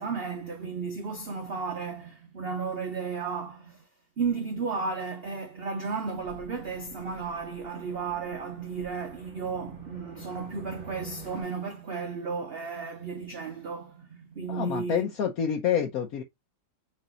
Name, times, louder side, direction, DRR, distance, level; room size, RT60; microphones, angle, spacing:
voice 1, 0.0-3.9 4.2-15.1, right 5 dB, 85° right, 0.5 m, -34 dB
sound 1, 6.2-11.4, right 3 dB, 5° left, 1.8 m, -47 dB
voice 2, 14.5-16.2, left 8 dB, 60° left, 1.1 m, -27 dB
4.3 x 3.2 x 3.8 m
omnidirectional pair, 1.9 m